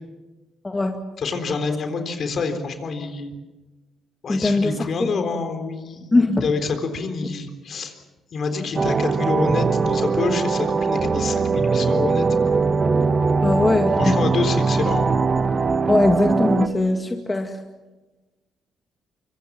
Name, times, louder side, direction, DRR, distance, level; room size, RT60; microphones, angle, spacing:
voice 1, 0.6-1.0 4.3-5.1 6.1-6.5 13.4-14.2 15.9-17.6, left 2 dB, 20° left, 4 dB, 2.0 m, -20 dB
voice 2, 1.2-3.3 4.2-6.1 6.4-7.9 8.3-12.3 14.0-15.2, left 4 dB, 55° left, 7 dB, 3.8 m, -27 dB
sound 1, 8.8-16.7, right 4 dB, 35° right, 1.5 m, -21 dB
24.5 x 23.5 x 7.5 m, 1.2 s
cardioid pair, 90°, 0 cm